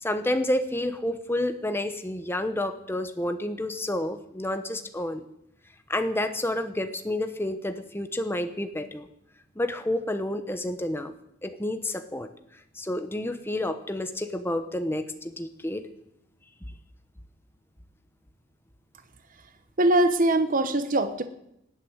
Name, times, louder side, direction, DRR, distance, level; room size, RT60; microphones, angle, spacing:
voice 1, 0.0-5.2 5.9-9.1 9.6-11.1 11.4-12.3 12.7-15.8, left 1 dB, 10° left, 8 dB, 1.0 m, -29 dB
voice 2, 19.8-21.2, right 1 dB, 45° right, 9 dB, 1.0 m, -22 dB
18.5 x 8.2 x 8.9 m, 0.80 s
head